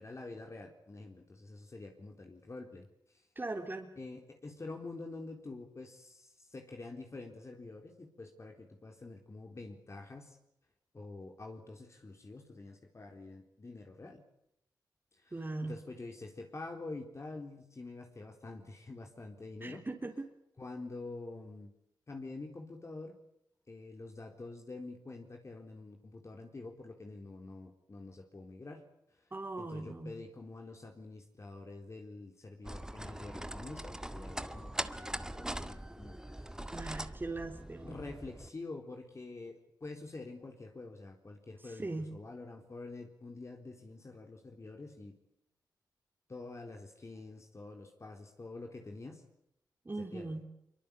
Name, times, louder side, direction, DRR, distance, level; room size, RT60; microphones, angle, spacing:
voice 1, 0.0-3.3 4.0-10.4 10.9-14.2 15.1-15.3 15.6-19.8 20.6-21.7 22.1-23.2 23.7-29.3 29.6-36.6 37.8-45.1 46.3-49.2 50.0-50.4, left 3 dB, 40° left, 2 dB, 4.1 m, -47 dB
voice 2, 3.4-3.9 15.3-15.7 19.6-20.3 29.3-30.1 36.7-38.0 41.6-42.1 49.9-50.4, right 2 dB, 25° right, 2 dB, 3.7 m, -40 dB
sound 1, 32.6-38.5, right 1 dB, 10° right, 1.9 m, -42 dB
24.5 x 24.0 x 8.5 m, 0.78 s
cardioid pair, 70°, 8 cm